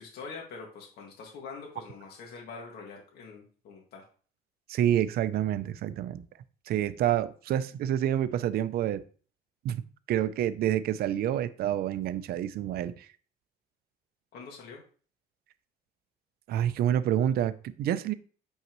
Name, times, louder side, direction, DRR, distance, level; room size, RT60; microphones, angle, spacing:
voice 1, 0.0-4.0 14.3-14.8, left 4 dB, 70° left, 2.1 m, -44 dB
voice 2, 4.7-6.2 6.7-9.0 9.6-9.8 10.1-13.1 16.5-18.1, right 11 dB, 65° right, 0.6 m, -28 dB
8.4 x 5.6 x 3.1 m
cardioid pair, 110°, 17 cm